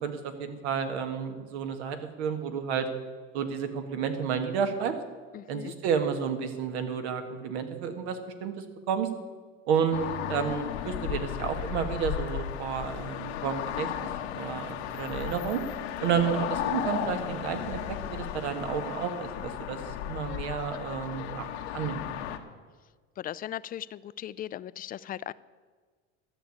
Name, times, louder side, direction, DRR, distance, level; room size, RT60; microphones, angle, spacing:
voice 1, 0.0-2.9 3.3-4.9 5.5-9.1 9.7-13.9 14.3-15.6 16.0-21.5 21.7-22.0, right 7 dB, 85° right, 7 dB, 1.7 m, -31 dB
voice 2, 5.3-5.7 23.2-25.3, left 11 dB, 30° left, 17 dB, 0.3 m, -38 dB
sound 1, 9.9-22.4, left 11 dB, 90° left, 1.2 m, -35 dB
13.0 x 6.7 x 8.6 m, 1.5 s
supercardioid pair, 105°, 32 cm